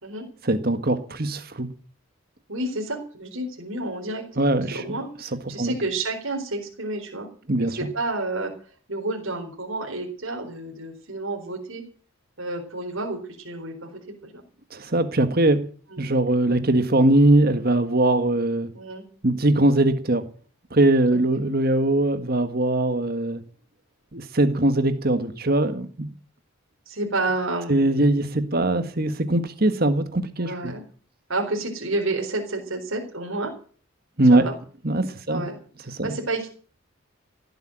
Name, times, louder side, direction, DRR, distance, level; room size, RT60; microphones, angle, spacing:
voice 1, 0.4-1.7 4.4-4.8 5.2-5.7 7.5-7.8 14.7-15.6 16.0-18.7 19.2-20.2 20.7-23.4 24.1-26.1 27.7-30.7 34.2-34.5 34.8-35.4 35.9-36.1, right 1 dB, 45° right, 10 dB, 1.7 m, -21 dB
voice 2, 2.5-4.2 4.7-5.1 5.5-7.3 7.8-8.5 8.9-11.8 12.4-14.4 15.9-16.0 18.7-19.0 26.9-28.2 30.4-30.8 31.3-33.5 34.3-34.5 35.3-35.5 36.0-36.5, right 2 dB, 75° right, 1 dB, 4.1 m, -30 dB
17.0 x 8.3 x 9.0 m, 0.44 s
head